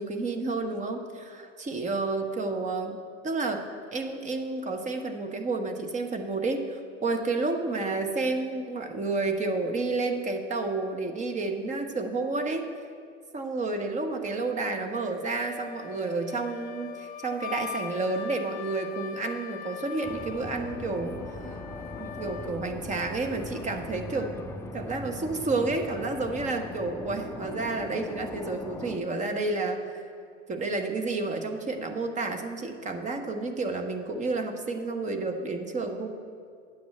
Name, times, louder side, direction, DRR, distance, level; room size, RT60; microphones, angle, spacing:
voice 1, 0.0-3.6 3.9-12.7 13.3-21.6 22.0-24.3 24.7-30.0 30.5-36.1, right 3 dB, 20° right, 5 dB, 1.1 m, -30 dB
Wind instrument woodwind instrument, 15.2-22.7, left 7 dB, 25° left, 1.2 m, -41 dB
sound 1, 20.0-29.0, left 2 dB, 5° left, 0.6 m, -40 dB
9.2 x 7.5 x 8.8 m, 2.3 s
figure-of-eight pair, 85°, 37 cm